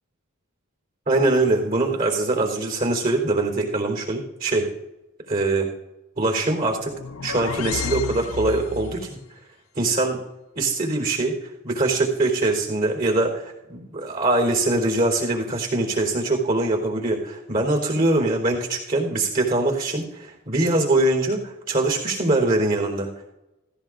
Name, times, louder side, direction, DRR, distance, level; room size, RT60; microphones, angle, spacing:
voice 1, 1.1-4.7 5.3-5.7 6.2-6.9 7.2-9.2 9.8-10.2 10.5-11.4 11.6-23.3, right 2 dB, 40° right, 1 dB, 3.7 m, -23 dB
sound 1, 6.8-9.1, left 5 dB, 85° left, 0.5 m, -31 dB
16.5 x 16.0 x 2.6 m, 1.0 s
head